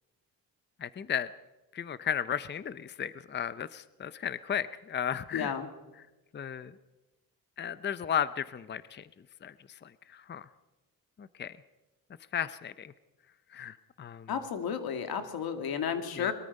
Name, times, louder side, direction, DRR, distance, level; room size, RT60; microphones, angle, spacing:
voice 1, 0.8-1.3 1.7-5.5 6.3-6.7 7.6-9.1 9.4-9.5 9.8-10.5 11.2-11.5 12.3-12.9 13.5-14.3 16.1-16.3, left 8 dB, 30° left, 15 dB, 0.6 m, -34 dB
voice 2, 5.3-5.7 14.3-16.3, left 7 dB, 85° left, 7 dB, 2.2 m, -32 dB
22.0 x 22.0 x 5.4 m, 1.1 s
cardioid pair, 120°, 36 cm